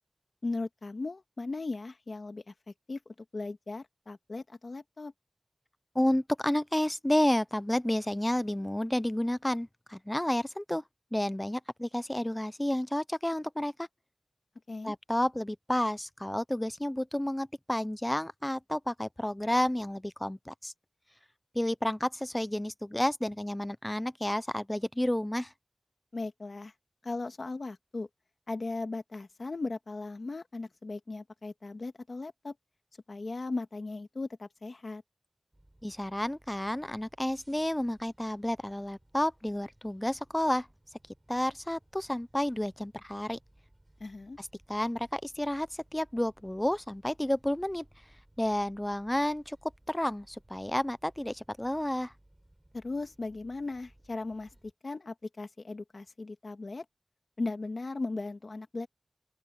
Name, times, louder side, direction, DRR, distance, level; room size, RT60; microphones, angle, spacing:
voice 1, 0.4-3.0 3.3-5.1 14.7-14.9 26.1-26.7 27.0-28.1 28.5-32.5 33.1-35.0 44.0-44.4 52.7-54.5 54.8-56.9 57.4-58.9, left 3 dB, 70° left, 1.9 m, -37 dB
voice 2, 5.9-10.8 11.1-13.9 14.8-20.7 21.5-25.5 35.8-40.7 41.3-43.4 44.4-47.8 48.4-49.6 49.9-52.1, left 1 dB, 15° left, 0.7 m, -31 dB
sound 1, 35.5-54.7, right 1 dB, 20° right, 6.5 m, -62 dB
open air
wide cardioid pair, 65°, 0 cm